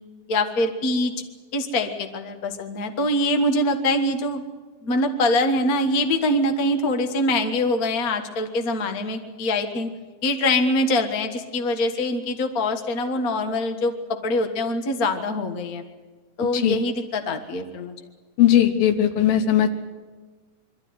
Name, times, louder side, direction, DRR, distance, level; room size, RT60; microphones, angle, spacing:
voice 1, 0.3-1.1 1.5-4.4 4.8-9.9 10.2-13.9 14.2-15.8 16.4-17.9, left 1 dB, 50° left, 5 dB, 1.0 m, -24 dB
voice 2, 18.4-19.7, left 11 dB, 85° left, 7 dB, 3.0 m, -18 dB
23.0 x 14.5 x 9.5 m, 1.3 s
omnidirectional pair, 4.1 m